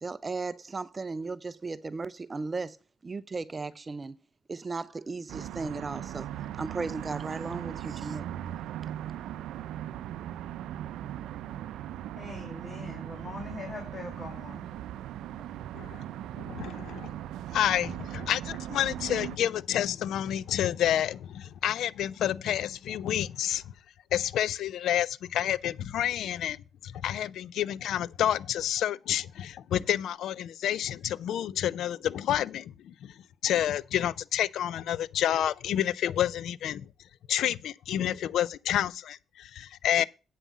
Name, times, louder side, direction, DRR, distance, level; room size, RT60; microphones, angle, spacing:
voice 1, 0.0-2.8 3.0-4.2 4.5-8.3, right 3 dB, 30° right, 0.5 m, -36 dB
sound 1, 5.3-19.4, right 11 dB, 85° right, 0.4 m, -39 dB
voice 2, 12.2-14.7, left 3 dB, 35° left, 2.3 m, -42 dB
voice 3, 16.4-17.1 17.5-23.6 24.1-26.6 26.8-33.1 33.4-36.9 37.3-40.0, left 11 dB, 75° left, 0.4 m, -29 dB
8.4 x 5.5 x 7.2 m
cardioid pair, 90°, 0 cm